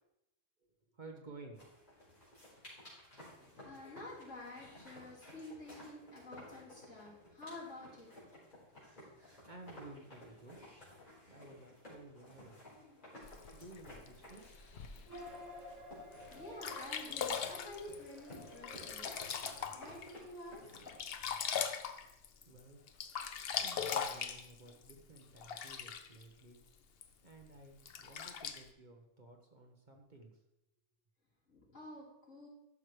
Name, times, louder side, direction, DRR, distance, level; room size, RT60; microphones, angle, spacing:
voice 1, 0.6-1.6 9.0-10.6 11.3-12.7 13.5-14.4 22.4-22.8 23.6-26.6 27.2-30.3, right 2 dB, 40° right, 2 dB, 1.0 m, -55 dB
sound 1, 1.6-20.9, left 1 dB, 40° left, 4.1 m, -55 dB
voice 2, 3.4-8.2 16.3-19.1 19.7-20.6 31.5-32.5, left 2 dB, 80° left, -7 dB, 3.7 m, -50 dB
Sink (filling or washing), 13.2-15.2 15.8-15.9 16.3-16.4 16.6-20.1 20.5-22.6 22.9-26.2 27.0-27.1 27.8-28.6, left 7 dB, 60° left, 0.8 m, -40 dB
sound 2, 15.1-19.9, left 1 dB, 90° right, 1.6 m, -53 dB
12.0 x 6.2 x 3.2 m, 0.87 s
omnidirectional pair, 1.3 m